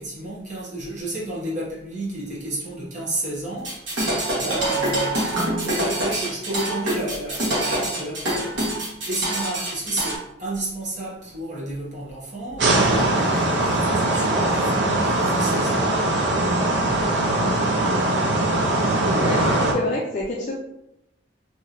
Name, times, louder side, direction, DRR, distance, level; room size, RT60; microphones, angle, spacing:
voice 1, 0.0-8.6 9.1-15.9 16.9-17.0, right 1 dB, 40° right, -6 dB, 1.0 m, -31 dB
sound 1, 3.6-10.2, right 1 dB, 85° right, 1.1 m, -25 dB
sound 2, 12.6-19.7, right 2 dB, 70° right, 0.5 m, -21 dB
voice 2, 19.2-20.5, left 1 dB, 40° left, -2 dB, 0.4 m, -28 dB
3.1 x 2.7 x 2.5 m, 0.84 s
head